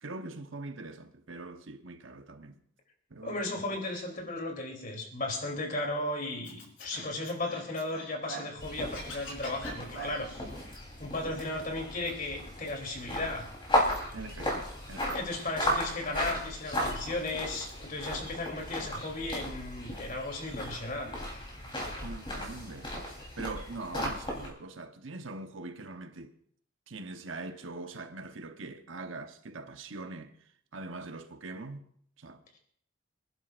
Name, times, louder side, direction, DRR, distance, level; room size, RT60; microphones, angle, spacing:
voice 1, 0.0-2.6 3.1-3.4 14.1-15.2 22.0-23.1 23.4-26.3 26.9-31.9 32.2-32.6, right 3 dB, 70° right, 1.0 m, -42 dB
voice 2, 3.2-10.3 11.0-13.5 15.1-21.1, left 2 dB, 45° left, 3.2 m, -35 dB
Scratching (performance technique), 6.4-8.6 8.8-10.4, right 1 dB, 70° left, 4.3 m, -43 dB
sound 1, 8.6-24.5, equal, 25° left, 3.7 m, -35 dB
26.5 x 11.0 x 2.5 m
head